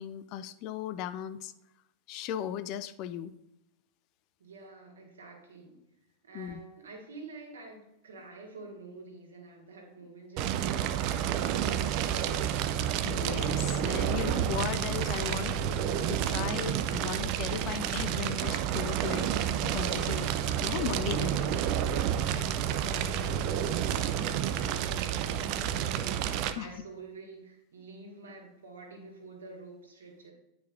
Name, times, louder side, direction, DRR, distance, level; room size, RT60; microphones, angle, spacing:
voice 1, 0.0-1.5 2.1-3.3 6.3-6.6 13.0-19.3 19.6-20.3 20.6-21.5 22.3-22.7 26.6-26.7, left 10 dB, 40° left, 12 dB, 0.4 m, -37 dB
voice 2, 4.4-5.8 6.2-12.5 22.7-24.4 24.7-30.3, right 3 dB, 70° right, 0 dB, 1.8 m, -48 dB
Fire, 10.4-26.5, right 9 dB, 40° right, 0.4 m, -30 dB
9.9 x 4.5 x 2.5 m, 0.87 s
figure-of-eight pair, 90°, 0 cm